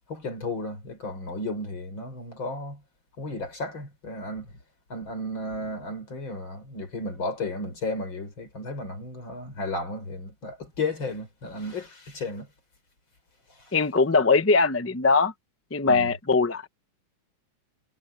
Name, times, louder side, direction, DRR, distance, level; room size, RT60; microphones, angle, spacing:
voice 1, 0.1-2.8 3.2-4.5 4.9-12.5 15.9-16.1, left 2 dB, 80° left, 6.2 m, -33 dB
voice 2, 13.7-15.3 15.7-16.7, left 4 dB, 20° left, 0.4 m, -21 dB
omnidirectional pair, 2.1 m